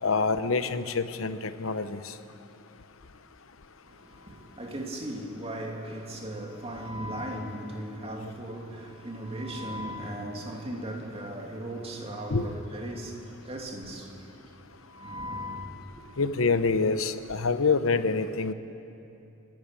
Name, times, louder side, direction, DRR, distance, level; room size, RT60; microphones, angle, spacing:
voice 1, 0.0-2.1 8.2-8.3 12.3-12.4 16.2-18.5, left 4 dB, 85° left, 0.9 m, -26 dB
voice 2, 3.9-14.4 14.8-16.0, right 1 dB, 30° right, 2.6 m, -37 dB
28.0 x 12.5 x 9.0 m
head